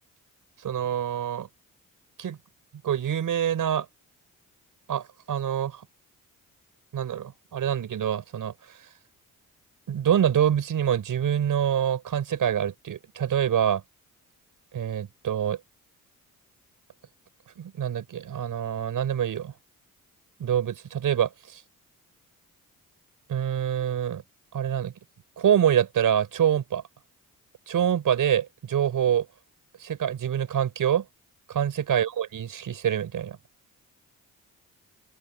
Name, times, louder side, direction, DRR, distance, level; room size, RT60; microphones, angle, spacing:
voice 1, 0.6-1.5 2.2-2.4 2.8-3.9 4.9-5.9 6.9-8.8 9.9-13.8 14.7-15.6 17.6-19.5 20.4-21.6 23.3-24.2 24.5-24.9 25.4-26.8 27.7-29.3 29.8-31.1 31.5-33.4, right 9 dB, 70° right, 5.4 m, -26 dB
open air
cardioid pair, 100°, 34 cm